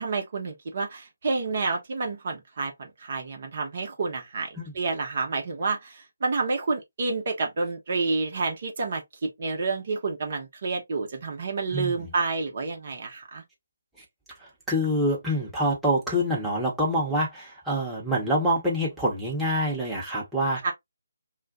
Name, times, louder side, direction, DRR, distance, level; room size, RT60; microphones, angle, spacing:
voice 1, 0.0-4.5 4.7-13.4 20.6-20.7, right 3 dB, 45° right, 0.8 m, -29 dB
voice 2, 11.7-12.1 14.7-20.7, equal, 5° right, 1.0 m, -26 dB
2.4 x 2.2 x 3.7 m
figure-of-eight pair, 150°, 0 cm